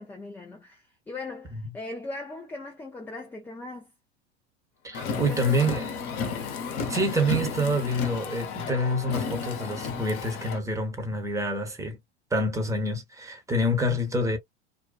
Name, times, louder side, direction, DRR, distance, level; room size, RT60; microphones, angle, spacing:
voice 1, 0.0-3.9 5.3-5.9, left 2 dB, 5° left, 0.3 m, -39 dB
voice 2, 4.8-5.9 6.9-12.0 12.3-14.4, equal, 10° right, 0.9 m, -27 dB
Car, 4.9-10.6, left 5 dB, 40° left, 0.9 m, -33 dB
2.6 x 2.2 x 2.3 m
figure-of-eight pair, 85°, 32 cm